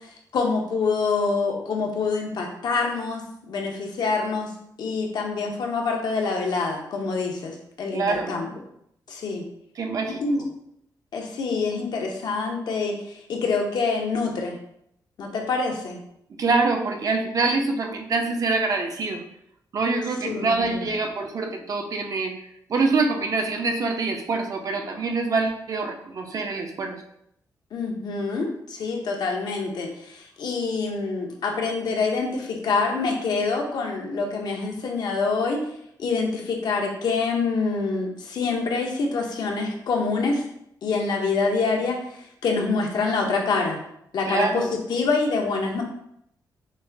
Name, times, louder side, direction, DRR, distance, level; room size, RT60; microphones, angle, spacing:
voice 1, 0.3-4.5 4.8-8.5 9.1-9.4 10.1-10.4 11.1-14.6 15.2-16.0 20.2-20.9 27.7-35.6 36.0-40.4 40.8-42.0 42.4-43.8 44.1-44.6 44.9-45.8, left 4 dB, 70° left, 1 dB, 0.8 m, -26 dB
voice 2, 7.9-8.4 9.8-10.5 16.4-19.2 19.7-22.3 22.7-27.0 44.3-44.7, right 3 dB, 55° right, 4 dB, 0.6 m, -25 dB
6.1 x 2.1 x 2.7 m, 0.74 s
cardioid pair, 95°, 7 cm